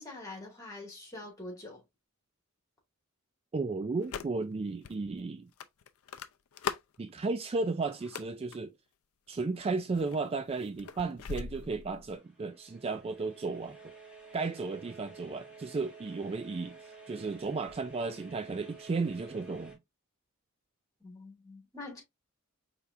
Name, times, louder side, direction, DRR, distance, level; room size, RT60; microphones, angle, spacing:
voice 1, 0.0-1.8 21.0-22.0, left 2 dB, 15° left, 2.1 m, -45 dB
voice 2, 3.5-5.5 7.0-8.7 9.3-13.8 14.3-19.8, right 3 dB, 25° right, 0.3 m, -34 dB
sound 1, 4.0-4.5 4.8-5.0 5.6-7.0 7.9-8.6 9.3-9.6 9.9-12.2, left 6 dB, 75° left, 0.4 m, -40 dB
sound 2, 12.1-19.8, right 4 dB, 5° right, 1.8 m, -52 dB
4.6 x 3.4 x 2.5 m
head